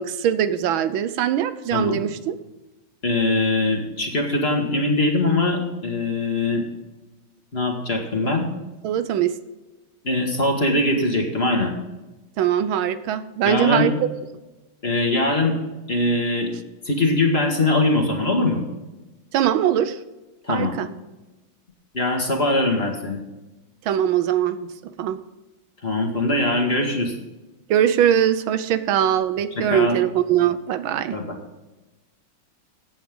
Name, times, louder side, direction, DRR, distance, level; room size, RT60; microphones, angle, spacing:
voice 1, 0.0-2.3 8.8-9.4 12.4-13.9 19.3-20.0 20.5-20.9 23.8-24.7 25.0-25.2 27.7-31.2, right 10 dB, 80° right, 12 dB, 1.5 m, -21 dB
voice 2, 3.0-6.6 7.5-8.5 10.0-11.7 13.4-13.9 14.8-15.6 15.9-16.5 16.9-18.6 20.4-20.7 21.9-23.2 25.8-27.1 29.6-29.9 31.1-31.4, left 2 dB, 30° left, 2 dB, 2.1 m, -22 dB
15.0 x 8.8 x 3.7 m, 1.1 s
omnidirectional pair, 2.2 m